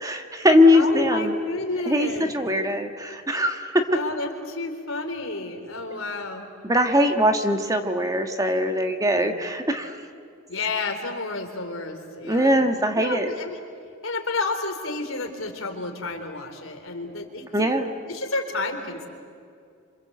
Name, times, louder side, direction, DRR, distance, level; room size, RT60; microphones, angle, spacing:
voice 1, 0.0-1.4 1.9-2.1 2.3-4.0 6.7-10.0 12.2-13.3 17.5-17.9, left 1 dB, 15° right, 5 dB, 1.6 m, -21 dB
voice 2, 0.7-2.3 3.9-6.5 9.1-9.4 10.5-13.6 14.0-17.5 18.1-19.1, left 3 dB, 70° left, 4 dB, 3.8 m, -31 dB
27.5 x 27.0 x 8.0 m, 2.4 s
head